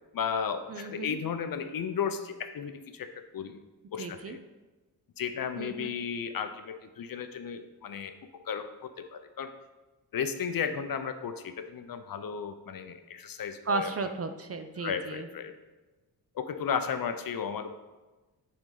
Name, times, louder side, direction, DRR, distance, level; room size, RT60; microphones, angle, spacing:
voice 1, 0.1-3.6 3.9-4.4 5.2-8.1 8.4-9.5 10.1-13.9 14.8-15.5 16.3-17.7, left 7 dB, 55° left, 9 dB, 0.6 m, -34 dB
voice 2, 0.7-1.2 4.0-4.4 5.6-5.9 13.7-15.3, right 3 dB, 35° right, 7 dB, 0.5 m, -34 dB
9.1 x 4.0 x 3.8 m, 1.2 s
wide cardioid pair, 160°, 41 cm